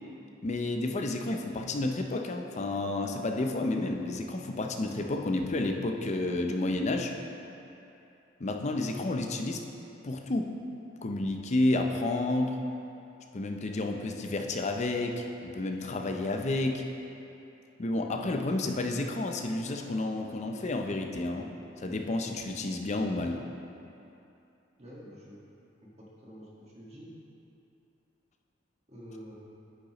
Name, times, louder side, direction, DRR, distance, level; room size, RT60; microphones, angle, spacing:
voice 1, 0.4-7.1 8.4-9.6 10.0-10.6 11.0-12.6 13.3-16.8 17.8-21.5 21.8-23.4, left 2 dB, 40° left, 3 dB, 0.5 m, -30 dB
voice 2, 24.8-25.4 25.8-27.1 28.9-29.4, equal, 35° right, -6 dB, 1.6 m, -48 dB
9.8 x 6.6 x 3.0 m, 2.8 s
head